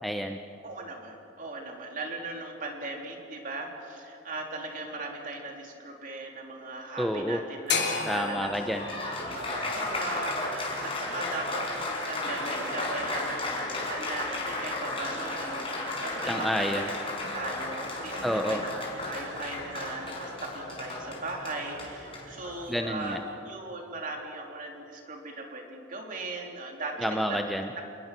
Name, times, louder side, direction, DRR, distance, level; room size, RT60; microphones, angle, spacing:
voice 1, 0.0-0.4 7.0-7.4 8.0-8.9 16.3-16.9 18.2-18.6 22.7-23.2 27.0-27.8, equal, ahead, 4 dB, 0.8 m, -29 dB
voice 2, 0.6-16.5 17.1-18.6 19.1-27.4, right 2 dB, 40° right, 1 dB, 3.5 m, -38 dB
sound 1, 7.7-11.8, left 5 dB, 60° left, 3.3 m, -34 dB
Applause, 8.4-23.1, left 2 dB, 30° left, 5.2 m, -34 dB
28.0 x 20.5 x 6.1 m, 2.9 s
head